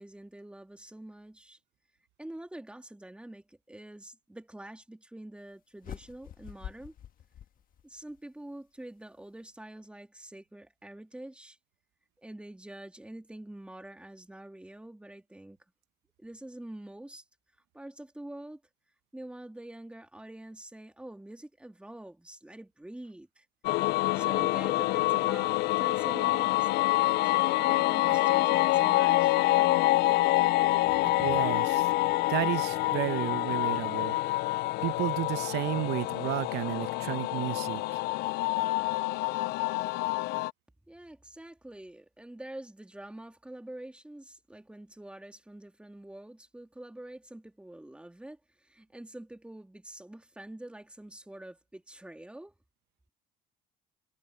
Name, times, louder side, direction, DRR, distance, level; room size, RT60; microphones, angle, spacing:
voice 1, 0.0-1.6 2.2-6.9 7.8-11.6 12.2-15.6 16.2-17.2 17.7-18.6 19.1-23.4 23.8-29.8 40.9-52.5, right 1 dB, 5° right, 3.0 m, -46 dB
sound 1, 5.8-8.2, left 10 dB, 55° left, 1.5 m, -46 dB
sound 2, 23.6-40.5, left 18 dB, 80° left, 0.4 m, -27 dB
sound 3, 28.1-29.6 30.0-34.6, right 9 dB, 50° right, 5.7 m, -54 dB
voice 2, 31.2-31.9 32.3-34.4 34.8-38.0, right 17 dB, 85° right, 0.9 m, -32 dB
cardioid pair, 110°, 17 cm